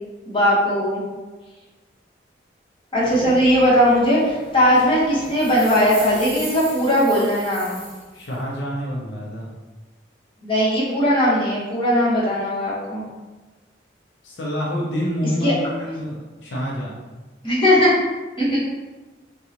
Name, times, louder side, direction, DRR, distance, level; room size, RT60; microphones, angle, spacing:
voice 1, 0.3-1.0 2.9-7.7 10.4-13.0 15.4-15.5 17.4-17.9 18.4-18.6, equal, 30° left, -9 dB, 1.1 m, -18 dB
sound 1, 3.0-8.4, right 1 dB, 10° right, 0.7 m, -38 dB
voice 2, 8.1-9.5 14.2-16.9, equal, 75° left, -4 dB, 0.6 m, -27 dB
3.6 x 2.3 x 2.9 m, 1.2 s
head